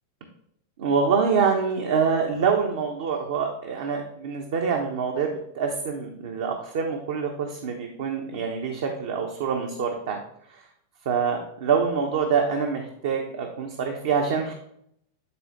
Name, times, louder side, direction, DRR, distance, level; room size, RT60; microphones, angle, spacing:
voice 1, 0.8-10.2 10.5-10.6 11.0-14.5, right 6 dB, 55° right, 2 dB, 0.9 m, -25 dB
9.7 x 4.1 x 3.1 m, 0.71 s
figure-of-eight pair, 90°, 0 cm